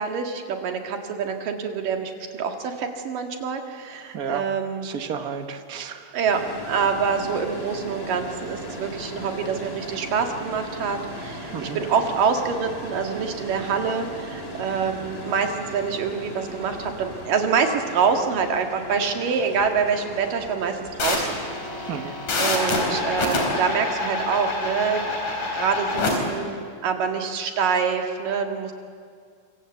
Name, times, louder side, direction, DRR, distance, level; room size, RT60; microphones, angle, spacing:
voice 1, 0.0-4.9 6.1-21.4 21.8-25.1 25.5-28.7, right 6 dB, 85° right, 4 dB, 3.7 m, -26 dB
voice 2, 4.1-4.4 4.8-6.1 11.5-11.8 21.9-22.1, right 7 dB, 65° right, 7 dB, 0.9 m, -32 dB
sound 1, 6.3-22.0, equal, 20° left, 2.9 m, -38 dB
sound 2, 21.0-26.1, left 2 dB, 65° left, 5.4 m, -26 dB
26.0 x 26.0 x 8.1 m, 2.1 s
omnidirectional pair, 3.8 m